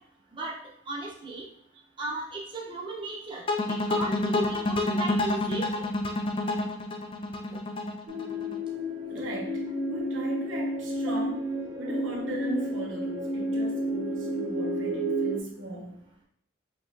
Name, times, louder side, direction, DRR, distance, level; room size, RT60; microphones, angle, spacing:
voice 1, 0.9-1.4 2.0-5.8 9.1-9.2, right 3 dB, 25° right, -4 dB, 0.8 m, -36 dB
sound 1, 3.5-8.6, left 2 dB, 30° left, 0.4 m, -28 dB
sound 2, 8.1-15.4, equal, 70° right, 1.3 m, -31 dB
voice 2, 9.1-9.6 9.9-11.4 11.8-16.0, right 1 dB, 85° right, -1 dB, 1.1 m, -37 dB
5.9 x 3.0 x 2.6 m, 0.71 s
head